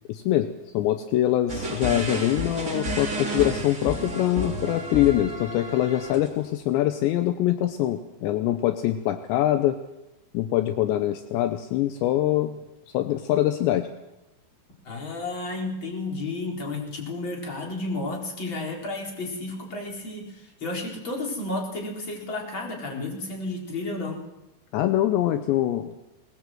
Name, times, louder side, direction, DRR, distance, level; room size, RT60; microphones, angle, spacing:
voice 1, 0.1-0.5 0.7-9.8 10.3-12.6 12.9-13.9 24.7-25.9, left 13 dB, 80° left, 9 dB, 3.0 m, -24 dB
sound 1, 1.5-6.4, equal, 20° right, 3.4 m, -31 dB
voice 2, 14.8-24.2, left 2 dB, 25° left, 0 dB, 4.5 m, -32 dB
21.5 x 20.0 x 7.8 m, 0.97 s
omnidirectional pair, 5.3 m